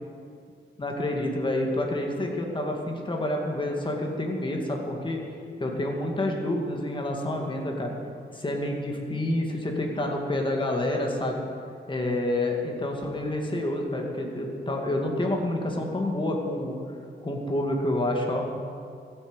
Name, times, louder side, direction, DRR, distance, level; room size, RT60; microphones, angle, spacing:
voice 1, 0.8-5.2 5.6-7.9 8.3-11.4 11.9-16.8 17.2-18.5, left 1 dB, 25° left, 1 dB, 2.2 m, -28 dB
15.0 x 8.7 x 8.1 m, 2.3 s
wide cardioid pair, 135°, 20 cm